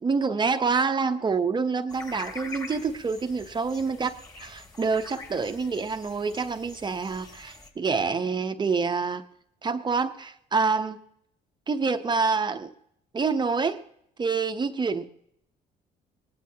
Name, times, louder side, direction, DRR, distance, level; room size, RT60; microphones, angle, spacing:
voice 1, 0.0-9.2 9.6-11.0 11.7-12.7 13.1-13.8 14.2-15.1, right 4 dB, 25° right, 0.9 m, -27 dB
sound 1, 1.9-7.7, left 3 dB, 25° left, 2.8 m, -45 dB
20.0 x 19.0 x 2.9 m
cardioid pair, 110°, 17 cm